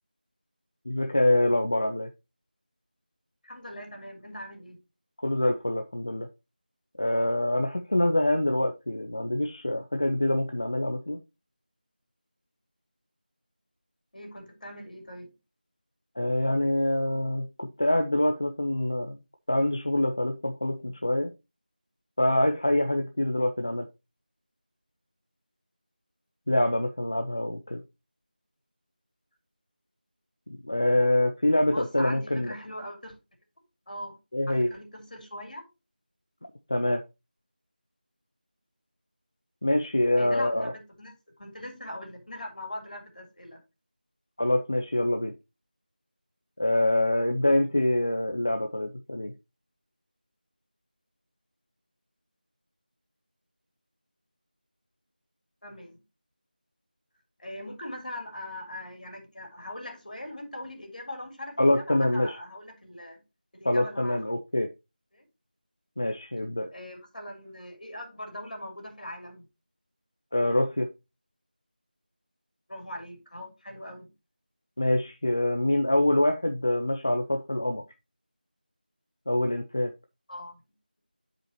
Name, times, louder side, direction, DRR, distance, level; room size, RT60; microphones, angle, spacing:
voice 1, 0.9-2.1 5.2-6.3 7.0-11.2 16.2-19.2 19.5-21.3 22.2-23.9 26.5-27.8 30.6-32.5 34.3-34.7 36.7-37.0 39.6-40.7 44.4-45.3 46.6-49.3 61.6-62.4 63.6-64.7 66.0-66.7 70.3-70.9 74.8-77.8 79.3-79.9, left 1 dB, 25° left, 0.4 m, -25 dB
voice 2, 3.4-4.8 14.1-15.3 31.7-33.1 33.9-34.2 34.7-35.6 40.2-43.6 55.6-56.0 57.4-63.2 63.5-64.2 65.1-65.3 66.7-69.5 72.7-74.1 80.3-80.6, left 1 dB, 55° left, 3.5 m, -41 dB
11.5 x 5.0 x 2.9 m
figure-of-eight pair, 175°, 5 cm